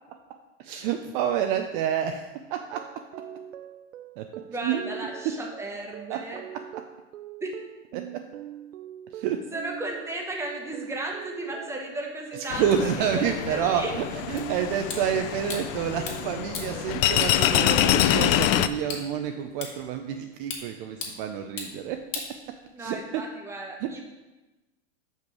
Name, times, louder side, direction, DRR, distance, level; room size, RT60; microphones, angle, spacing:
voice 1, 0.6-2.9 4.2-4.3 4.6-4.8 6.1-6.2 7.9-8.2 9.1-9.4 12.4-13.8 14.3-22.0 22.8-23.0 23.8-23.9, right 9 dB, 45° right, 5 dB, 0.6 m, -28 dB
sound 1, 2.6-17.5, right 11 dB, 85° right, 0.5 m, -43 dB
voice 2, 4.5-6.4 7.4-7.5 9.5-13.9 22.7-24.0, right 2 dB, 5° right, 0 dB, 1.2 m, -35 dB
sound 2, 12.5-18.7, left 12 dB, 50° left, 0.4 m, -25 dB
sound 3, 14.4-23.0, left 4 dB, 85° left, 2.0 m, -41 dB
5.3 x 5.2 x 6.3 m, 1.1 s
hypercardioid pair, 125°, 37 cm